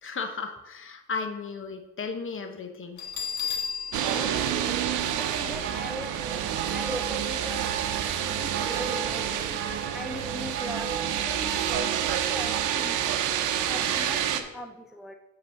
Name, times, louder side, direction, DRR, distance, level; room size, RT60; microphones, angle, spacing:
voice 1, 0.0-3.0, left 4 dB, 45° left, 7 dB, 1.0 m, -35 dB
Bell, 3.0-5.7, left 6 dB, 70° left, 1.6 m, -35 dB
sound 1, 3.9-14.4, right 10 dB, 85° right, 0.7 m, -28 dB
voice 2, 4.1-4.8 5.2-9.6 9.9-13.2 13.7-15.1, left 1 dB, ahead, 5 dB, 0.6 m, -40 dB
sound 2, 5.6-13.2, right 7 dB, 45° right, 0.7 m, -36 dB
8.0 x 4.2 x 5.6 m, 0.98 s
cardioid pair, 90°, 30 cm